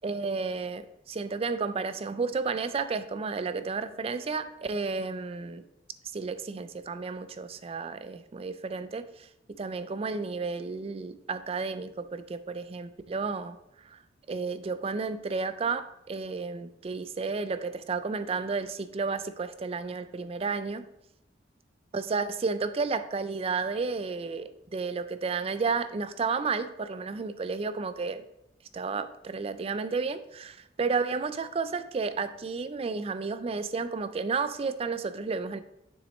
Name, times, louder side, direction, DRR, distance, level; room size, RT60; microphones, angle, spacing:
voice 1, 0.0-5.7 6.1-13.6 13.8-14.0 14.3-20.9 21.9-28.2 28.7-35.6, right 4 dB, 30° right, 12 dB, 0.3 m, -32 dB
7.0 x 6.2 x 3.1 m, 0.83 s
head